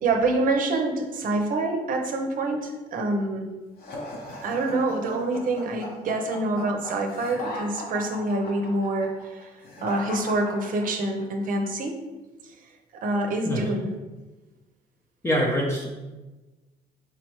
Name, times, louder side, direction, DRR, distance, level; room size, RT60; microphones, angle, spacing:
voice 1, 0.0-3.5 4.4-9.5 9.8-12.0 12.9-13.9, right 2 dB, 55° right, 4 dB, 0.7 m, -26 dB
sound 1, 3.8-11.2, left 2 dB, 65° left, 1.0 m, -37 dB
voice 2, 15.2-15.9, equal, 15° left, -3 dB, 0.7 m, -24 dB
5.0 x 3.2 x 3.0 m, 1.2 s
cardioid pair, 110°, 17 cm